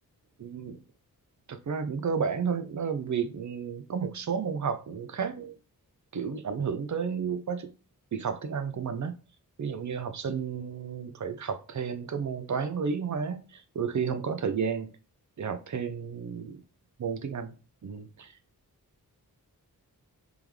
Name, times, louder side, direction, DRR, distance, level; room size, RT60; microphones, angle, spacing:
voice 1, 0.4-0.8 1.5-5.5 6.1-7.7 8.1-9.1 9.6-14.9 15.4-16.6 17.0-17.6 17.8-18.3, right 6 dB, 50° right, 8 dB, 0.6 m, -32 dB
3.5 x 3.5 x 3.1 m, 0.35 s
wide cardioid pair, 85°, 37 cm